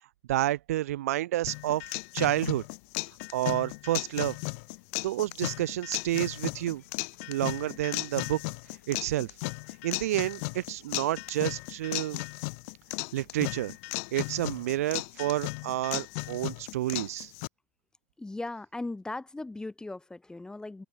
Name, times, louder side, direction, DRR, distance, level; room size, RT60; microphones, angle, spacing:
voice 1, 0.3-1.8 2.1-2.6 3.3-4.4 5.0-6.8 7.3-8.4 8.9-9.3 9.8-12.2 13.1-13.7 14.1-17.3, right 14 dB, 75° right, 0.4 m, -29 dB
sound 1, 1.5-17.5, left 32 dB, 60° left, 1.0 m, -36 dB
sound 2, 6.1-8.9 9.4-11.0 11.2-11.7 12.9-15.2 15.9-16.0, left 9 dB, 80° left, 5.4 m, -65 dB
voice 2, 18.2-20.9, left 2 dB, 10° left, 0.7 m, -38 dB
open air
hypercardioid pair, 90°, 8 cm